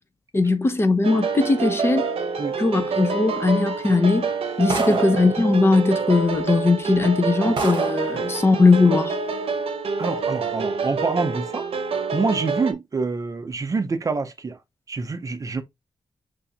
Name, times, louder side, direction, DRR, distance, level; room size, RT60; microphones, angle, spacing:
voice 1, 0.3-2.1 2.6-4.3 4.6-9.2, left 3 dB, 25° left, 0.7 m, -19 dB
sound 1, 1.0-12.7, right 4 dB, 85° right, 0.7 m, -27 dB
sound 2, 4.7-5.3 6.3-6.4 7.0-7.1 7.6-8.1, right 3 dB, 55° right, 1.3 m, -28 dB
voice 2, 10.0-11.7 12.1-14.6 14.9-15.6, right 4 dB, 35° right, 0.6 m, -26 dB
6.2 x 2.7 x 2.8 m
wide cardioid pair, 145°, 10 cm